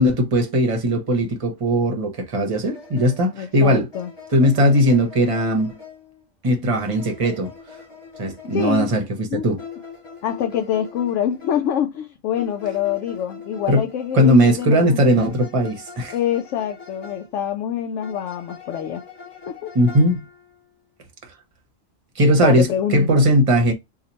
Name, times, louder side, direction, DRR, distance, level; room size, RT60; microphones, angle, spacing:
voice 1, 0.0-3.9 4.3-5.7 6.4-7.5 8.2-9.6 13.7-13.8 14.1-16.1 19.7-20.3 22.2-23.7, equal, 30° right, 0.7 m, -18 dB
sound 1, 2.6-6.2 6.7-9.1 9.6-11.8 12.4-14.8 15.1-17.4 18.0-20.7, left 5 dB, 25° left, 1.0 m, -42 dB
voice 2, 3.3-4.1 8.5-8.9 9.3-9.5 10.2-15.0 16.1-19.0 19.5-19.7 22.2-23.3, left 9 dB, 75° left, 0.9 m, -25 dB
2.9 x 2.5 x 3.8 m
omnidirectional pair, 1.3 m